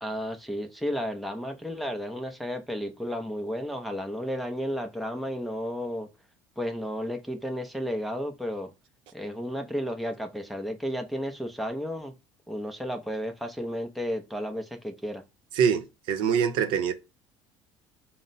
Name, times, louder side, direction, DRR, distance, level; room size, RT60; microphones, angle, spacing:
voice 1, 0.0-6.1 6.6-8.7 9.1-12.1 12.5-15.2, equal, ahead, 0.5 m, -33 dB
voice 2, 15.5-16.9, right 7 dB, 70° right, 0.7 m, -24 dB
4.2 x 2.1 x 3.9 m
cardioid pair, 145°, 9 cm